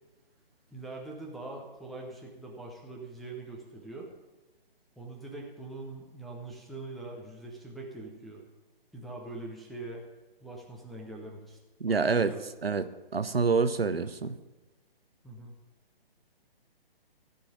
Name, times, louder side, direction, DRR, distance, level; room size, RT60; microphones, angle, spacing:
voice 1, 0.7-4.1 5.0-8.4 8.9-10.0 10.4-11.6 11.9-12.4 15.2-15.5, right 2 dB, ahead, -3 dB, 0.7 m, -42 dB
voice 2, 11.8-12.3 12.6-12.9 13.1-14.4, right 4 dB, 80° right, 11 dB, 0.8 m, -26 dB
15.0 x 5.6 x 6.9 m, 1.1 s
figure-of-eight pair, 135°, 29 cm